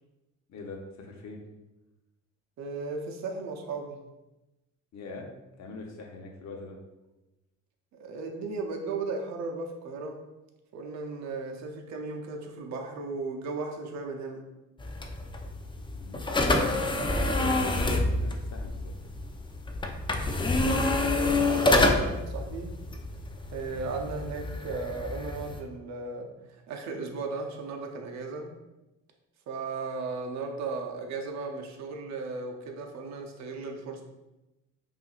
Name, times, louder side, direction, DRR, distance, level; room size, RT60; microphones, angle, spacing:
voice 1, 0.5-1.4 4.9-5.3 5.6-6.8 15.9-16.4 17.3-18.9, left 3 dB, 65° left, 1 dB, 0.8 m, -42 dB
voice 2, 2.6-4.0 8.0-10.2 10.7-14.4 20.6-22.7 23.5-28.5 29.5-34.0, right 3 dB, 65° right, 2 dB, 0.6 m, -36 dB
sound 1, 14.8-25.6, left 2 dB, 15° left, 0.4 m, -28 dB
5.5 x 2.5 x 2.4 m, 1.0 s
cardioid pair, 90°, 30 cm